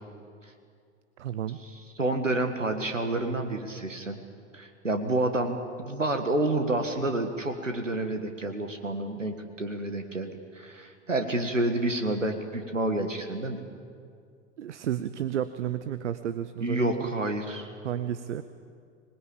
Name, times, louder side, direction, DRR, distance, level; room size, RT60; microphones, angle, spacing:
voice 1, 1.2-1.6 14.6-17.1 17.8-18.4, right 10 dB, 70° right, 13 dB, 1.0 m, -32 dB
voice 2, 2.0-4.2 4.5-13.6 16.6-17.7, right 2 dB, 90° right, 6 dB, 1.8 m, -29 dB
25.5 x 20.5 x 8.8 m, 2.3 s
figure-of-eight pair, 85°, 37 cm